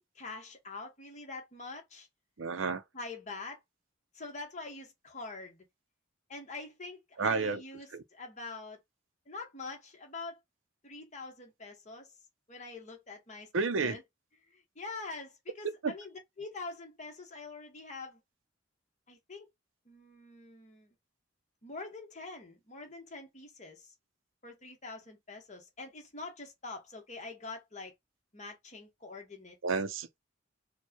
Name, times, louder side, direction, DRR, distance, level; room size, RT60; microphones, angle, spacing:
voice 1, 0.0-2.1 2.9-3.6 4.1-5.6 6.3-8.8 9.3-10.4 10.8-12.1 12.5-14.0 14.5-18.2 19.1-19.5 19.8-20.9 21.6-23.9 24.4-27.9 28.3-29.6, left 3 dB, 35° left, 1.3 m, -45 dB
voice 2, 2.4-2.8 7.2-7.6 7.9-8.0 13.5-14.0 15.8-15.9 29.6-30.2, right 4 dB, 80° right, 0.6 m, -31 dB
4.5 x 2.3 x 2.8 m
head